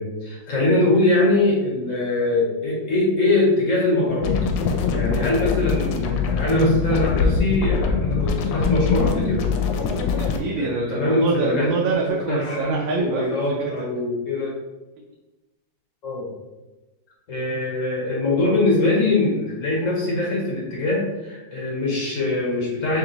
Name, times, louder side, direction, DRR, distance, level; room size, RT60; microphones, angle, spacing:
voice 1, 0.0-4.4 4.9-9.5 10.6-11.7 12.3-14.5 16.0-16.3 17.3-23.0, left 2 dB, 50° left, -4 dB, 1.1 m, -22 dB
sound 1, 4.2-10.4, left 5 dB, 80° left, 1.3 m, -23 dB
voice 2, 9.9-13.2 13.6-13.9, right 4 dB, 85° right, -2 dB, 1.4 m, -26 dB
3.5 x 2.9 x 3.8 m, 1.1 s
omnidirectional pair, 2.0 m